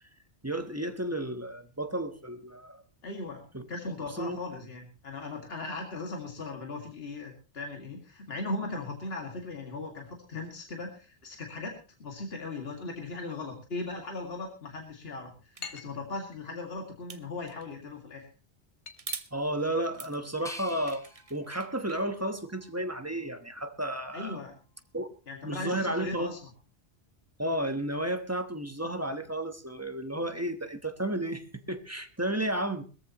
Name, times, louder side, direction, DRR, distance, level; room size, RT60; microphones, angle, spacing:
voice 1, 0.4-2.8 3.5-3.6 4.0-4.4 19.3-24.4 24.9-25.1 25.4-26.3 27.4-32.8, right 1 dB, 15° right, 7 dB, 1.2 m, -32 dB
voice 2, 3.0-3.4 3.7-11.7 12.0-18.3 24.1-24.6 25.3-26.5, left 3 dB, 60° left, 2 dB, 2.4 m, -38 dB
sound 1, 14.8-24.8, left 6 dB, 75° left, 1.5 m, -53 dB
sound 2, 15.5-15.7 17.1-17.7 19.0-19.3 19.8-22.0, right 4 dB, 35° right, 0.9 m, -43 dB
sound 3, 20.4-23.4 23.9-24.7, left 1 dB, 5° left, 0.6 m, -51 dB
21.0 x 14.0 x 3.0 m, 0.33 s
omnidirectional pair, 1.2 m